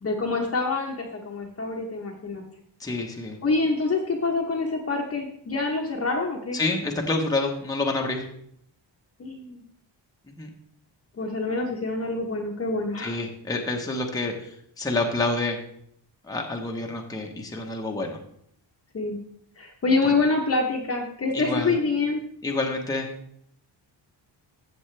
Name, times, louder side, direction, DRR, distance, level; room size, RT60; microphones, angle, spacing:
voice 1, 0.0-2.4 3.4-6.6 9.2-9.6 11.2-13.2 18.9-19.2 19.6-22.2, left 3 dB, 30° left, 0 dB, 1.0 m, -26 dB
voice 2, 2.8-3.4 6.5-8.2 10.4-10.5 13.0-15.6 16.3-18.2 21.3-21.7 22.4-23.1, left 2 dB, 10° left, 1 dB, 1.0 m, -28 dB
13.5 x 7.9 x 3.3 m, 0.71 s
wide cardioid pair, 175°, 45 cm